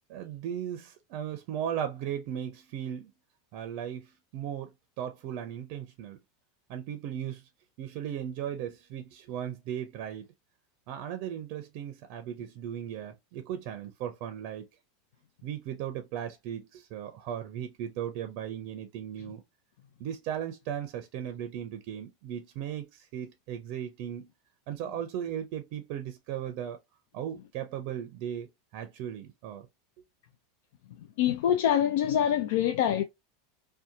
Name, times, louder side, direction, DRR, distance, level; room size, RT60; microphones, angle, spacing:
voice 1, 0.1-3.1 3.5-6.2 6.7-7.4 7.8-10.3 10.9-14.6 15.4-19.4 20.0-24.3 24.7-26.8 27.1-29.7, right 9 dB, 60° right, 0.5 m, -37 dB
voice 2, 31.2-33.0, left 10 dB, 70° left, 0.3 m, -25 dB
2.7 x 2.2 x 2.5 m
hypercardioid pair, 110°, 0 cm